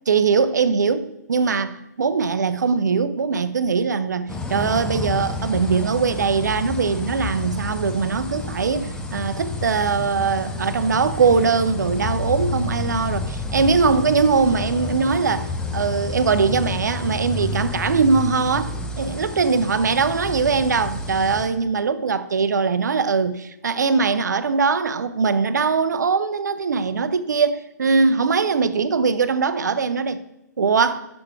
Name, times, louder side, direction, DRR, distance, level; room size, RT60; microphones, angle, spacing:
voice 1, 0.1-30.2 30.6-31.0, right 5 dB, 70° right, 0.5 m, -21 dB
sound 1, 4.3-21.5, left 2 dB, 5° left, 0.5 m, -30 dB
6.1 x 4.9 x 4.5 m
figure-of-eight pair, 130°, 10 cm